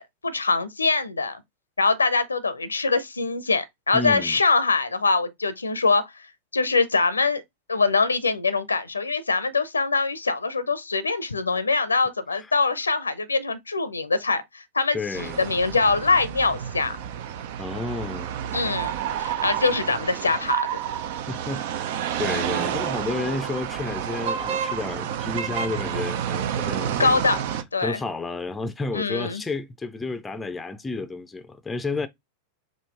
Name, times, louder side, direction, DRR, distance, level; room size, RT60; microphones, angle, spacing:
voice 1, 0.0-1.4 1.8-6.1 6.5-7.4 7.7-17.0 18.5-18.9 19.2-20.7 27.0-27.4 27.7-28.0 28.9-29.4, left 4 dB, 80° left, 0.6 m, -23 dB
voice 2, 3.9-4.4 12.3-12.5 14.9-15.4 17.6-18.3 21.3-27.2 27.8-32.1, left 3 dB, 10° left, 0.6 m, -31 dB
sound 1, 15.1-27.6, right 9 dB, 50° right, 0.5 m, -29 dB
5.2 x 2.6 x 3.4 m
figure-of-eight pair, 90°, 0 cm